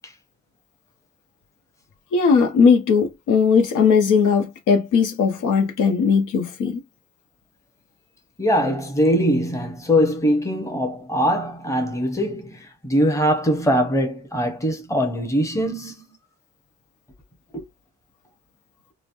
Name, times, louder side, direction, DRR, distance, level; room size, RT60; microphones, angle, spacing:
voice 1, 2.1-6.8, left 5 dB, 80° left, 0.9 m, -18 dB
voice 2, 8.4-16.0 17.5-17.7, equal, 10° left, 0.8 m, -22 dB
3.1 x 2.1 x 2.5 m
cardioid pair, 90°, 30 cm